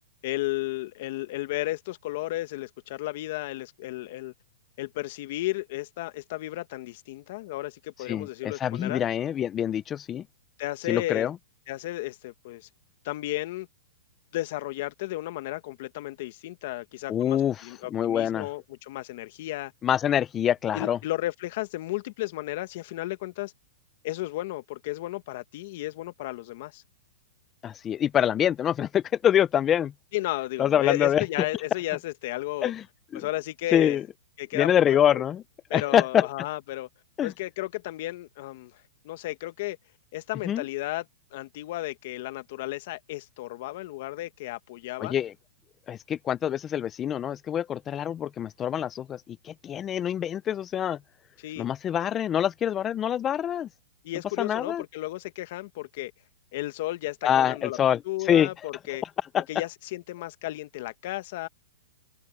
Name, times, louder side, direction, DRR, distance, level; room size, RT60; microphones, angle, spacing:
voice 1, 0.2-4.3 4.8-9.0 10.6-11.3 11.7-12.7 13.0-13.7 14.3-19.7 20.7-23.5 24.0-26.8 30.1-32.7 33.1-34.0 34.4-35.2 35.7-36.9 37.2-39.8 40.1-41.0 41.3-45.1 51.4-51.7 54.0-56.1 56.5-57.8 58.0-59.0 59.5-61.5, left 17 dB, 50° left, 1.5 m, -33 dB
voice 2, 8.1-10.3 10.9-11.4 17.1-18.5 19.8-21.0 27.6-29.9 30.6-31.2 32.6-32.8 33.1-33.3 33.7-34.0 34.5-35.4 35.7-36.3 37.2-37.3 40.4-40.6 45.0-45.3 45.9-51.0 51.6-53.7 54.4-54.8 57.2-58.5 59.3-59.4, left 10 dB, 20° left, 0.5 m, -25 dB
hypercardioid pair, 145°, 0 cm